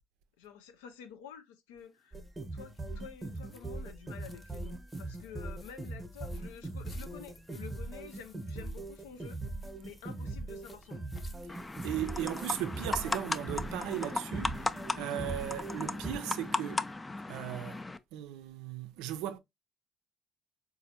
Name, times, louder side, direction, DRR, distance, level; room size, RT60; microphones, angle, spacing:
voice 1, 0.4-2.2 2.5-9.4 9.8-11.0, left 8 dB, 90° left, 0.4 m, -50 dB
sound 1, 1.8-14.1, left 3 dB, 40° left, 0.7 m, -61 dB
sound 2, 2.1-16.2, right 2 dB, 15° right, 0.8 m, -41 dB
sound 3, 11.5-18.0, left 2 dB, 20° left, 0.3 m, -36 dB
voice 2, 11.8-16.9 17.3-17.8 18.1-19.4, right 12 dB, 80° right, 0.3 m, -37 dB
4.0 x 2.4 x 2.7 m
hypercardioid pair, 55°, 0 cm